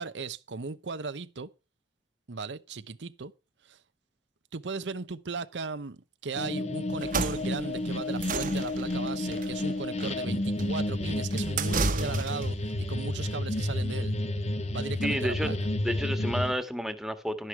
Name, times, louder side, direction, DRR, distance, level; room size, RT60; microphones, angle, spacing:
voice 1, 0.0-1.5 2.3-3.3 3.6-3.8 4.5-14.1 14.7-15.6, right 4 dB, 80° right, 0.8 m, -37 dB
sound 1, 6.4-16.5, left 1 dB, 40° left, 1.3 m, -31 dB
sound 2, 6.9-12.6, right 4 dB, 50° right, 1.3 m, -33 dB
voice 2, 15.0-15.5 15.8-17.5, equal, ahead, 1.5 m, -31 dB
11.5 x 11.0 x 4.5 m
head